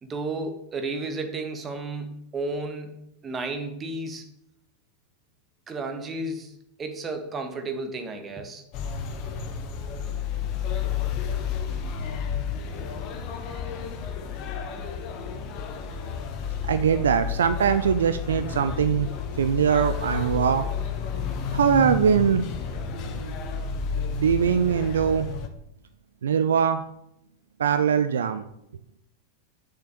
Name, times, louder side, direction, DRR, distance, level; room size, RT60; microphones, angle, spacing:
voice 1, 0.0-2.9 3.2-4.2 5.7-6.5 6.8-8.6, right 2 dB, 20° right, 6 dB, 1.4 m, -32 dB
sound 1, 8.7-25.5, left 6 dB, 40° left, 1.1 m, -31 dB
voice 2, 16.7-19.1 19.4-20.7 21.5-22.4 23.1-23.3 24.1-25.3 26.2-26.8 27.6-28.4, right 7 dB, 65° right, 11 dB, 0.4 m, -22 dB
6.7 x 5.8 x 6.7 m, 0.78 s
figure-of-eight pair, 90°, 0 cm